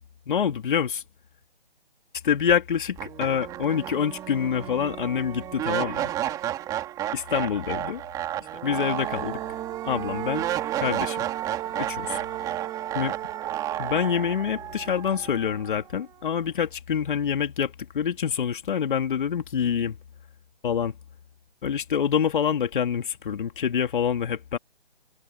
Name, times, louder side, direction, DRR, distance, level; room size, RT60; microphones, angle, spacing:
voice 1, 0.3-1.0 2.2-6.1 7.1-8.0 8.6-9.4 9.8-10.5 10.8-11.2 11.8-12.2 12.9-13.1 13.8-20.0 20.6-20.9 21.6-24.6, left 8 dB, 50° left, 3.3 m, -26 dB
sound 1, 2.5-2.6 3.0-16.0, right 12 dB, 10° right, 2.2 m, -31 dB
hypercardioid pair, 155°, 32 cm